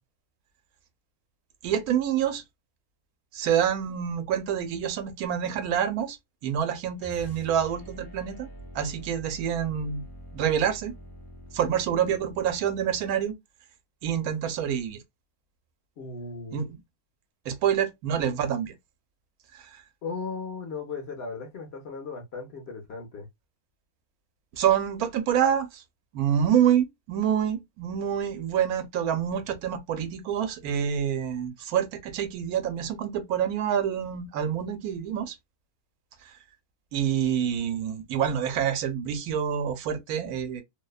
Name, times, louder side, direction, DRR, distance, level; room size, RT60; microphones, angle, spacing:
voice 1, 1.6-2.4 3.3-6.2 6.4-8.5 8.7-10.0 10.3-10.9 11.5-13.3 14.0-15.0 16.5-16.8 17.5-18.7 19.5-19.6 24.5-25.8 26.1-35.3 36.9-40.6, right 9 dB, 80° right, 1.1 m, -27 dB
sound 1, 7.0-13.2, equal, 25° left, 0.7 m, -45 dB
voice 2, 16.0-16.7 20.0-23.3, left 4 dB, 60° left, 0.8 m, -37 dB
2.6 x 2.1 x 2.2 m
omnidirectional pair, 1.5 m